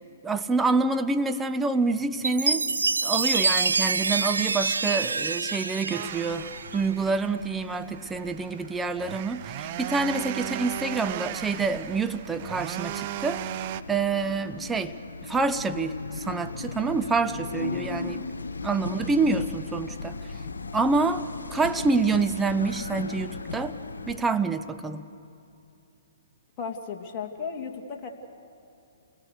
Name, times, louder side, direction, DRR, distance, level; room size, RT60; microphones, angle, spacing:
voice 1, 0.2-2.7 3.0-13.6 13.9-15.0 15.2-18.2 18.6-20.2 20.7-21.2 21.5-23.8 24.1-25.0, right 4 dB, 10° right, 9 dB, 0.9 m, -27 dB
Chime, 2.2-6.9, right 4 dB, 85° right, 0.7 m, -26 dB
sound 1, 5.9-13.8, right 13 dB, 45° right, 0.7 m, -37 dB
sound 2, 6.1-24.2, left 4 dB, 80° left, 1.4 m, -38 dB
voice 2, 26.6-28.1, left 6 dB, 30° left, 1 dB, 2.7 m, -35 dB
29.5 x 21.0 x 6.7 m, 2.8 s
hypercardioid pair, 130°, 0 cm